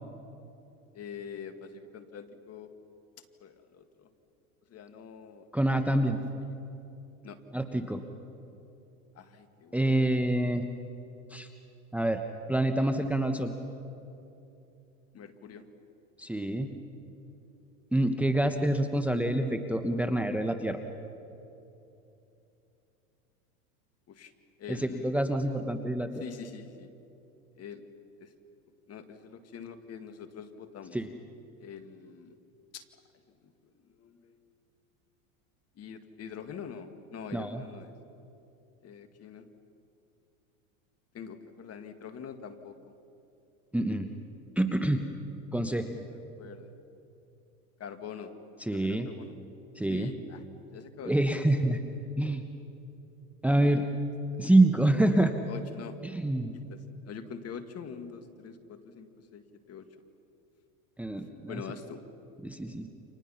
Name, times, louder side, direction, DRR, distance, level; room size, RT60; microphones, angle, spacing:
voice 1, 0.9-2.7 3.4-4.1 4.7-5.5 6.1-6.2 7.2-7.4 9.2-9.9 15.1-15.7 24.1-24.3 24.6-25.1 26.2-26.9 27.6-27.8 28.2-28.3 28.9-31.0 31.6-32.4 32.7-32.8 34.0-34.4 35.8-37.9 38.8-39.5 41.1-42.8 45.6-46.7 47.8-48.3 48.6-49.3 49.9-50.4 50.7-51.2 55.5-56.2 56.7-56.8 57.1-59.9 61.5-62.0, left 7 dB, 35° left, 9 dB, 2.1 m, -44 dB
voice 2, 5.5-6.2 7.5-8.0 9.7-10.6 11.3-11.5 11.9-12.2 12.5-13.5 16.2-16.7 17.9-20.8 24.7-26.2 30.9-31.1 37.3-37.6 43.7-44.1 44.6-45.0 45.5-45.9 48.6-49.1 49.8-50.1 51.0-51.8 52.2-52.4 53.4-53.9 54.4-55.4 56.0-56.5 61.0-61.6 62.4-62.9, right 1 dB, 5° right, 7 dB, 1.1 m, -26 dB
30.0 x 26.5 x 5.9 m, 2.8 s
hypercardioid pair, 100°, 43 cm